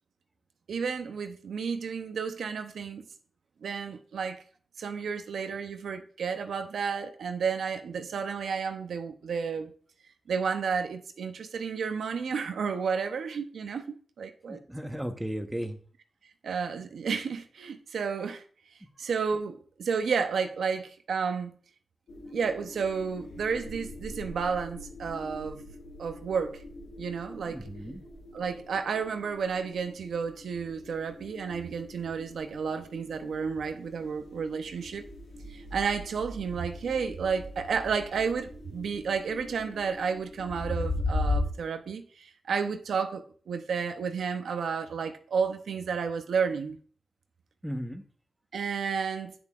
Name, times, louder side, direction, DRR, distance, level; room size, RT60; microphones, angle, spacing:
voice 1, 0.7-3.0 3.6-4.4 4.8-9.7 10.3-14.6 16.4-18.4 19.0-21.5 22.3-25.6 26.0-26.6 27.0-27.7 28.3-35.0 35.5-46.8 48.5-49.3, right 6 dB, 80° right, 0.7 m, -31 dB
voice 2, 14.5-15.8 27.5-28.0 47.6-48.0, equal, 5° right, 1.1 m, -35 dB
sound 1, 22.1-41.5, left 2 dB, 85° left, 1.8 m, -39 dB
8.8 x 6.9 x 2.4 m
cardioid pair, 55°, 0 cm